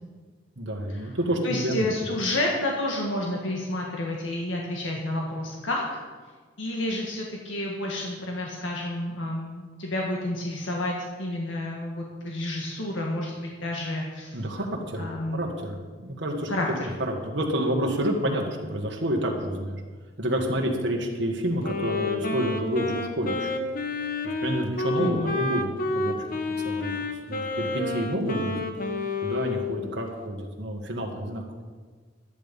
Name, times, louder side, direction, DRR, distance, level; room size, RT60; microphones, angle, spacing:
voice 1, 0.6-1.9 14.3-15.1 15.3-16.5 17.0-19.8 20.2-23.5 24.2-26.1 26.4-28.5 29.2-31.4, right 1 dB, 65° right, 1 dB, 1.9 m, -29 dB
voice 2, 1.4-6.0 6.6-14.4 15.0-15.5 16.5-17.0 25.0-25.4, left 1 dB, 90° left, -1 dB, 1.7 m, -30 dB
Wind instrument woodwind instrument, 21.6-29.8, left 3 dB, 50° left, 1.2 m, -29 dB
12.0 x 10.5 x 5.4 m, 1.5 s
head